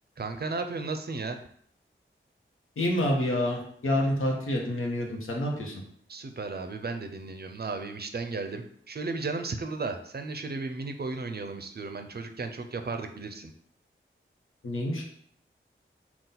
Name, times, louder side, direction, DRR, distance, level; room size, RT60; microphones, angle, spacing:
voice 1, 0.2-1.4 6.1-13.5, right 3 dB, 50° right, 7 dB, 0.5 m, -34 dB
voice 2, 2.8-5.7 14.6-15.0, left 1 dB, 80° left, 0 dB, 0.9 m, -28 dB
4.0 x 2.3 x 3.9 m, 0.64 s
cardioid pair, 45°, 21 cm